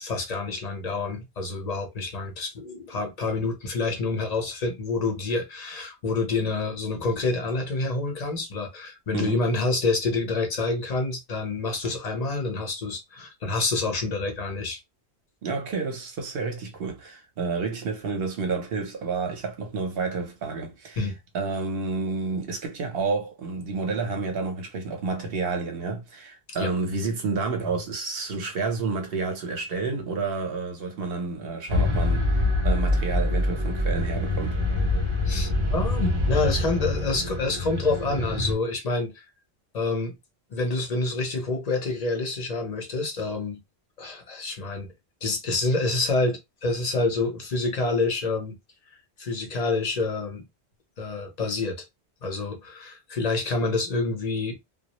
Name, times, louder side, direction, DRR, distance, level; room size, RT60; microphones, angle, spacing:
voice 1, 0.0-14.8 21.0-21.1 26.6-26.7 35.2-39.2 39.7-40.1 40.5-43.6 44.0-44.9 45.2-48.6 49.2-50.5 51.0-51.8 52.2-54.6, left 3 dB, 45° left, 0.7 m, -27 dB
voice 2, 15.4-21.0 21.3-34.6, right 4 dB, 60° right, 0.9 m, -30 dB
sound 1, 31.7-38.5, left 2 dB, 35° right, 0.6 m, -25 dB
2.2 x 2.0 x 2.9 m
omnidirectional pair, 1.1 m